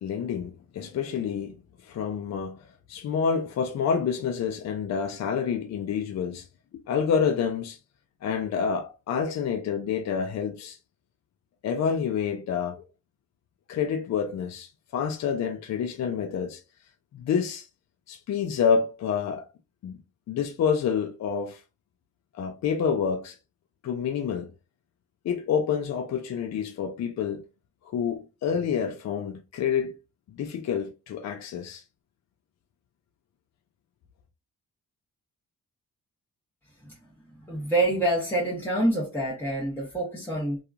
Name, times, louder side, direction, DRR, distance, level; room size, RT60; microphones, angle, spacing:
voice 1, 0.0-1.5 1.8-6.5 6.7-7.8 8.2-10.8 11.6-12.8 13.7-16.6 17.1-17.7 18.1-19.5 19.8-20.0 20.3-21.6 22.3-23.4 23.8-24.5 25.2-27.4 27.9-29.9 30.3-31.8, left 7 dB, 55° left, 0.5 m, -28 dB
voice 2, 37.4-40.6, right 1 dB, 5° left, 1.0 m, -26 dB
2.8 x 2.4 x 2.4 m
cardioid pair, 85°, 32 cm